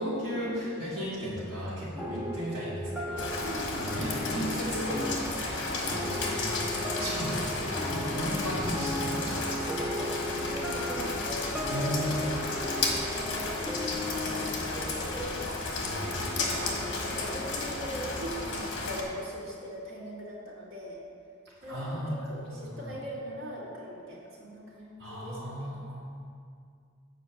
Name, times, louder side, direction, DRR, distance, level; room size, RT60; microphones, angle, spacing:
voice 1, 0.0-3.4 3.7-5.1 5.8-9.8 11.7-12.1 15.8-16.1 21.7-22.1 25.0-26.0, equal, 50° right, -12 dB, 2.3 m, -35 dB
voice 2, 1.9-2.4 3.4-4.1 5.8-6.3 10.0-12.7 13.0-15.6 16.2-21.0 21.6-25.8, equal, 70° right, -6 dB, 2.5 m, -41 dB
sound 1, 2.0-18.8, left 1 dB, 5° right, 0.6 m, -37 dB
Rain, 3.2-19.0, left 2 dB, 60° left, 1.3 m, -33 dB
sound 2, 8.1-17.3, equal, 25° left, 2.5 m, -51 dB
7.9 x 5.1 x 7.2 m, 2.3 s
head